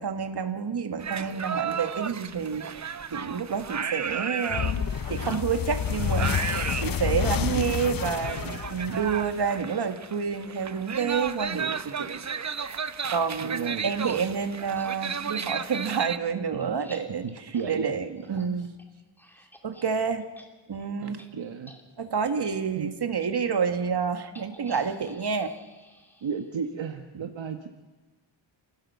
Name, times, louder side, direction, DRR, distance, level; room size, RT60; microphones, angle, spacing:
voice 1, 0.0-12.2 13.1-18.7 19.6-20.3 20.7-21.2 22.0-25.5, right 6 dB, 60° right, 7 dB, 1.9 m, -29 dB
sound 1, 1.0-16.2, right 6 dB, 40° right, 0.8 m, -34 dB
sound 2, 4.5-9.6, left 8 dB, 50° left, 0.6 m, -29 dB
voice 2, 7.4-7.8 13.4-13.9 16.5-16.7 17.2-17.9 18.3-18.5 21.0-21.8 22.7-22.9 26.2-27.7, right 6 dB, 75° right, 5 dB, 1.4 m, -33 dB
sound 3, 13.8-14.2 14.7-14.9 15.4-15.5 15.9-19.9 20.2-20.5 20.7-20.9 21.2-21.3 21.6-21.8 22.2-22.5 23.2-23.3 24.3-26.7, equal, 5° left, 2.5 m, -52 dB
29.0 x 16.5 x 7.0 m, 1.2 s
wide cardioid pair, 140°, 45 cm